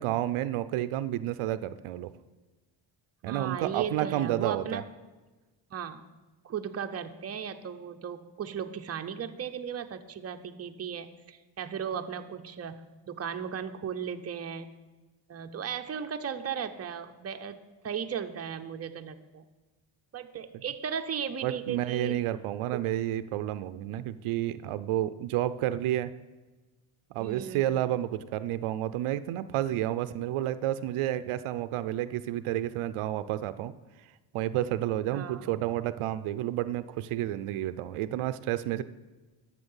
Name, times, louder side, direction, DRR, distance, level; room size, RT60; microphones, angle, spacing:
voice 1, 0.0-2.1 3.2-4.8 21.4-26.1 27.1-33.7 34.3-38.8, right 13 dB, 90° right, 13 dB, 0.6 m, -30 dB
voice 2, 3.3-4.9 5.7-6.0 6.4-14.7 15.3-19.5 20.1-22.2 22.7-22.8 23.9-24.1 27.2-27.8 35.1-35.5, right 7 dB, 30° right, 6 dB, 0.6 m, -36 dB
11.5 x 7.5 x 5.5 m, 1.2 s
cardioid pair, 120°, 49 cm